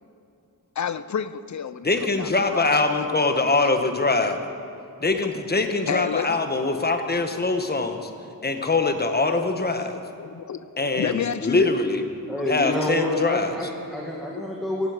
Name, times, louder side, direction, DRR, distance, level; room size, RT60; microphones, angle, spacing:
voice 1, 0.8-1.9 2.2-2.7 5.2-5.3 5.9-6.4 9.7-11.7 12.7-12.9 14.3-14.5, left 7 dB, 55° left, 14 dB, 0.6 m, -30 dB
voice 2, 1.8-4.4 5.0-8.1 8.4-10.0 10.8-12.0 12.5-13.5, left 3 dB, 30° left, 6 dB, 1.1 m, -23 dB
voice 3, 12.3-14.9, left 1 dB, ahead, -3 dB, 1.8 m, -27 dB
16.5 x 16.0 x 5.0 m, 2.7 s
wide cardioid pair, 150°, 35 cm